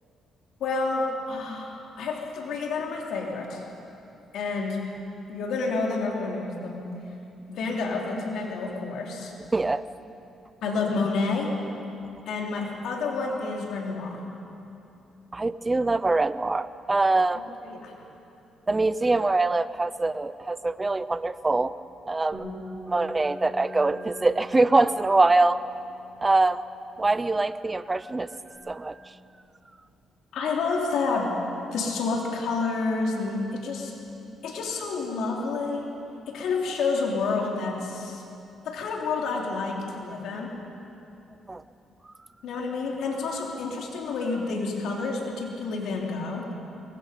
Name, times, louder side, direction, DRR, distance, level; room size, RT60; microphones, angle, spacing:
voice 1, 0.6-3.6 4.3-4.8 5.3-6.8 7.5-9.3 10.6-11.5 12.3-14.2 17.7-17.9 30.3-31.3 31.7-33.9 34.4-35.9 36.3-38.2 38.7-40.5 42.4-46.4, left 4 dB, 80° left, -1 dB, 3.5 m, -29 dB
voice 2, 9.5-9.8 15.3-17.4 18.7-21.7 22.1-22.5 22.9-25.7 26.2-26.6 27.0-29.1 41.5-41.6, right 2 dB, 20° right, 15 dB, 0.7 m, -24 dB
Bass guitar, 22.3-27.0 27.3-28.6, left 1 dB, 35° right, 6.3 m, -44 dB
23.0 x 22.0 x 5.3 m, 2.8 s
cardioid pair, 90°, 0 cm